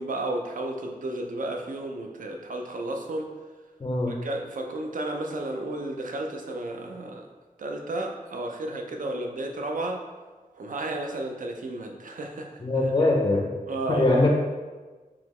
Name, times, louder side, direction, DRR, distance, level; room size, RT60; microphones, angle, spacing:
voice 1, 0.0-3.3 4.1-7.3 7.6-10.0 10.5-12.9 13.7-14.3, right 2 dB, 60° right, 2 dB, 0.5 m, -33 dB
voice 2, 3.8-4.2 12.6-13.5 13.9-14.3, left 2 dB, 25° left, -1 dB, 0.5 m, -22 dB
3.8 x 2.9 x 3.1 m, 1.3 s
wide cardioid pair, 100°, 15 cm